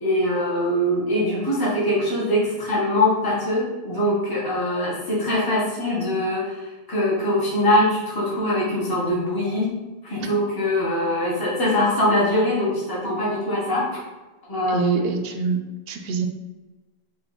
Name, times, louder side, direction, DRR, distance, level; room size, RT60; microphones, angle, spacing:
voice 1, 0.0-6.6 6.9-9.7 10.0-14.0 14.5-15.1, left 1 dB, 25° left, -6 dB, 1.0 m, -22 dB
voice 2, 14.7-15.6 15.9-16.3, right 6 dB, 70° right, 5 dB, 0.8 m, -25 dB
3.7 x 2.6 x 3.8 m, 1.2 s
omnidirectional pair, 1.0 m